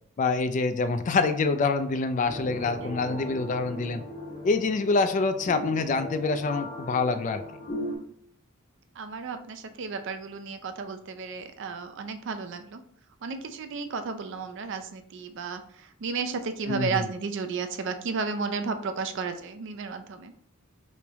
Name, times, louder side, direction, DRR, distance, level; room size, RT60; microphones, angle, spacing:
voice 1, 0.2-4.0 4.4-7.4 16.7-17.0, left 3 dB, 40° left, 9 dB, 0.3 m, -26 dB
sound 1, 2.2-8.0, equal, 65° left, 1.3 m, -38 dB
voice 2, 2.8-3.2 8.9-12.8 13.2-20.5, right 4 dB, 60° right, 8 dB, 0.4 m, -33 dB
3.2 x 3.0 x 3.4 m, 0.64 s
head